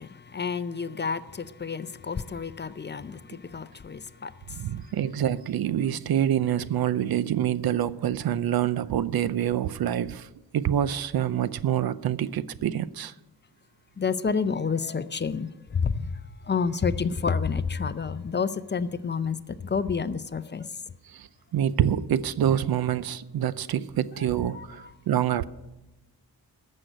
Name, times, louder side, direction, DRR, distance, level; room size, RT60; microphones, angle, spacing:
voice 1, 0.0-4.9 14.0-20.8 24.2-24.9, left 5 dB, 30° left, 0.5 m, -30 dB
voice 2, 4.5-10.3 10.5-13.1 21.1-25.4, right 10 dB, 75° right, 0.6 m, -26 dB
14.0 x 6.5 x 8.9 m
wide cardioid pair, 100°, 37 cm